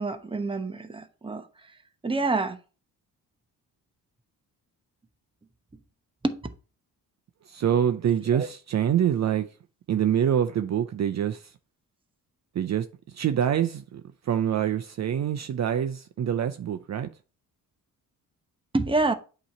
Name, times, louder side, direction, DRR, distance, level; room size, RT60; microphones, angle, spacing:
voice 1, 0.0-1.5 2.0-2.6 6.2-6.4 8.3-8.5 18.7-19.1, right 3 dB, 15° right, 0.9 m, -27 dB
voice 2, 7.5-9.5 9.9-11.5 12.5-17.1, right 9 dB, 50° right, 0.6 m, -26 dB
8.2 x 3.1 x 4.3 m
cardioid pair, 85°, 36 cm